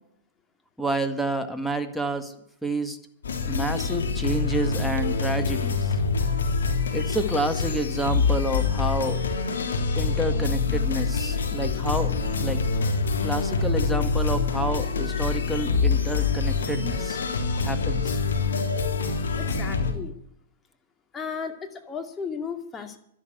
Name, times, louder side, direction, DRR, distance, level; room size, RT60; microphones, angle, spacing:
voice 1, 0.8-2.3 2.6-3.0 3.5-6.0 6.9-9.2 10.0-12.2 12.4-12.6 13.2-17.2 17.6-18.2, right 1 dB, ahead, 5 dB, 1.9 m, -29 dB
sound 1, 3.2-19.9, left 4 dB, 85° left, 3.2 m, -25 dB
voice 2, 19.4-20.2 21.1-23.0, left 6 dB, 20° left, 5 dB, 2.3 m, -34 dB
12.5 x 11.5 x 8.1 m, 0.73 s
hypercardioid pair, 120°, 0 cm